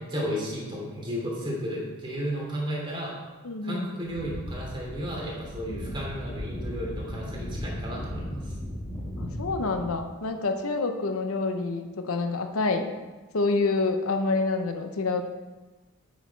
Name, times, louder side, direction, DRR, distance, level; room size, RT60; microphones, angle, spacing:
voice 1, 0.0-3.1 3.6-8.4, equal, 25° right, -4 dB, 2.8 m, -33 dB
voice 2, 3.4-3.9 5.7-5.9 9.2-12.9 13.3-15.2, left 3 dB, 85° left, 6 dB, 0.8 m, -27 dB
sound 1, 4.1-10.1, equal, 25° left, 1.5 m, -36 dB
8.3 x 6.5 x 4.6 m, 1.2 s
head